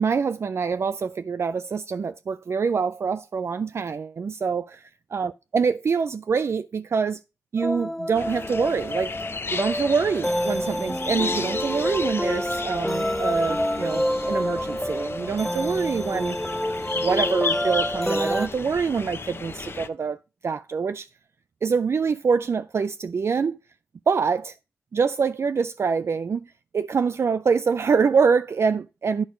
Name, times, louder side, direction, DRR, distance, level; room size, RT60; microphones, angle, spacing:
voice 1, 0.0-7.2 7.5-9.2 9.5-16.4 17.0-21.1 21.6-23.6 24.1-24.5 24.9-29.2, right 5 dB, 60° right, 0.3 m, -25 dB
sound 1, 7.6-18.5, equal, 5° left, 0.5 m, -27 dB
sound 2, 8.1-19.9, left 4 dB, 50° left, 0.8 m, -34 dB
10.5 x 4.7 x 5.0 m
wide cardioid pair, 75°, 5 cm